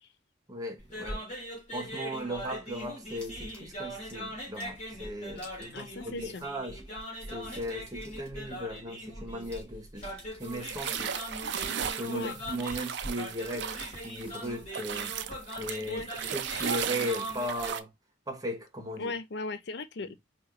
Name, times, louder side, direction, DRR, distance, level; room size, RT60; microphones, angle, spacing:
voice 1, 0.5-1.2 1.7-6.8 7.3-11.1 11.8-13.7 14.0-15.2 15.6-16.0 16.3-17.9 18.3-19.1, equal, 20° right, 1.3 m, -37 dB
sound 1, 0.8-17.7, equal, 40° left, 2.7 m, -41 dB
sound 2, 3.2-4.2 4.6-4.8 5.3-6.2 6.5-6.6 6.9-10.9 11.4-12.7 13.0-14.9 15.4-16.0, left 1 dB, 5° left, 2.1 m, -56 dB
voice 2, 5.7-6.4 12.1-12.3 15.9-16.1 19.0-20.1, left 3 dB, 60° left, 0.6 m, -37 dB
sound 3, 10.4-14.4 14.7-17.8, right 8 dB, 65° right, 0.5 m, -36 dB
4.4 x 2.7 x 3.9 m
head